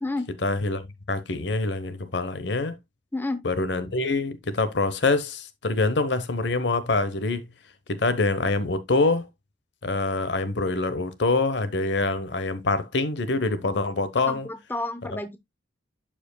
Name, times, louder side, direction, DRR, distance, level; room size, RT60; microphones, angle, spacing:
voice 1, 0.4-2.8 3.4-7.5 7.9-9.3 9.8-14.5, left 3 dB, 65° left, 1.0 m, -25 dB
voice 2, 3.1-3.4 14.3-15.4, left 2 dB, 10° left, 0.7 m, -30 dB
11.5 x 5.1 x 2.2 m
head